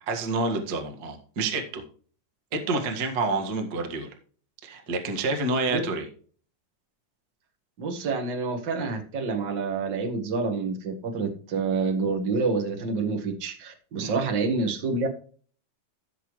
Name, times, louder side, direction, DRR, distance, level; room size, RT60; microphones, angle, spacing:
voice 1, 0.1-1.8 2.5-4.1 4.6-6.1 14.0-14.2, right 3 dB, 50° right, 3 dB, 1.1 m, -28 dB
voice 2, 7.8-15.1, right 4 dB, 80° right, 3 dB, 1.0 m, -28 dB
14.5 x 6.6 x 3.2 m, 0.42 s
omnidirectional pair, 4.7 m